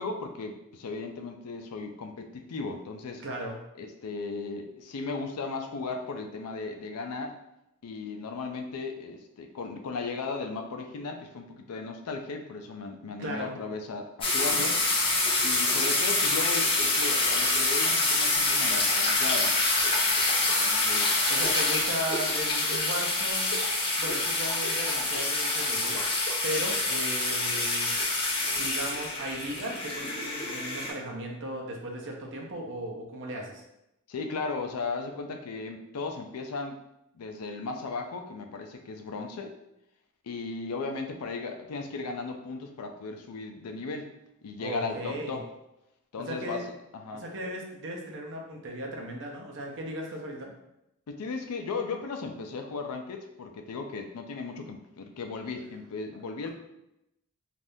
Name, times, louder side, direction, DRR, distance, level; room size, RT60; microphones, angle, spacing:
voice 1, 0.0-3.2 3.8-7.4 7.8-14.8 15.4-19.6 20.6-21.1 34.1-36.8 37.1-39.5 40.2-44.1 44.4-45.5 46.1-46.6 46.9-47.2 51.1-56.5, left 4 dB, 90° left, 5 dB, 0.4 m, -36 dB
voice 2, 3.2-3.6 13.2-13.6 21.3-23.5 24.0-26.0 26.4-27.9 28.5-33.6 44.6-45.4 46.2-46.6 47.2-50.5 56.4-56.5, right 1 dB, 55° right, 0 dB, 0.6 m, -36 dB
sound 1, 14.2-30.9, left 2 dB, 25° left, 0.7 m, -26 dB
3.4 x 2.5 x 2.6 m, 0.86 s
head